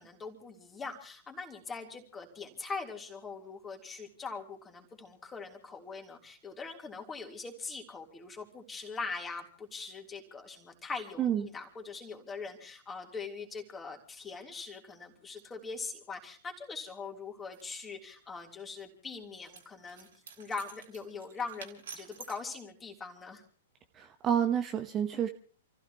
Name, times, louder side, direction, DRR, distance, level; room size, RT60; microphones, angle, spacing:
voice 1, 0.0-20.1 20.4-23.4, left 4 dB, 15° left, 2 dB, 3.4 m, -42 dB
voice 2, 11.2-11.5 23.9-25.3, right 9 dB, 25° right, 7 dB, 1.1 m, -29 dB
sound 1, 17.5-17.8 19.4-22.5, right 6 dB, 55° right, 3.3 m, -50 dB
29.0 x 15.5 x 3.0 m, 0.43 s
figure-of-eight pair, 105°, 0 cm